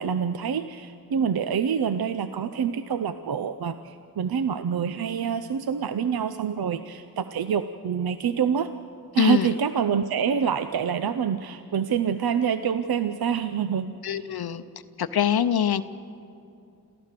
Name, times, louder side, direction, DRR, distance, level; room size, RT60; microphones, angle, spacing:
voice 1, 0.0-8.7 9.1-13.9, right 7 dB, 75° right, 11 dB, 0.6 m, -26 dB
voice 2, 9.2-9.5 14.0-14.6 15.0-15.8, left 9 dB, 80° left, 12 dB, 0.7 m, -23 dB
27.0 x 14.5 x 6.7 m, 2.7 s
wide cardioid pair, 80°, 37 cm